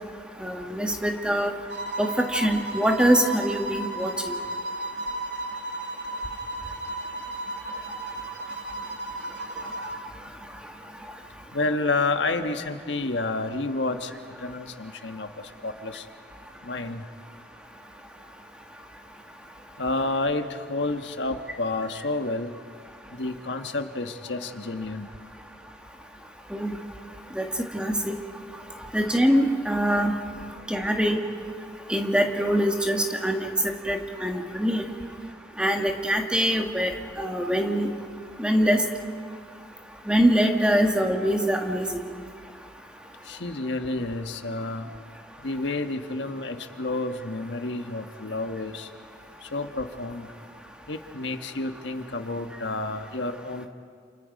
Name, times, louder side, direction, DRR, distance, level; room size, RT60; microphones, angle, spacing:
voice 1, 0.4-1.5 2.0-4.1 26.5-26.8 27.3-27.5 27.7-28.1 28.9-30.1 30.7-31.2 31.9-33.5 33.9-34.9 35.6-36.9 37.2-37.9 38.4-38.8 40.1-42.0, equal, 5° right, 3 dB, 1.6 m, -23 dB
sound 1, 1.7-10.1, right 2 dB, 70° right, 2.7 m, -34 dB
voice 2, 11.5-14.1 14.4-15.3 15.6-16.0 16.6-17.0 19.8-22.5 23.1-25.1 43.3-44.9 45.4-48.9 49.4-50.3 50.9-53.7, left 2 dB, 85° left, 6 dB, 1.4 m, -30 dB
29.0 x 28.5 x 5.3 m, 2.1 s
head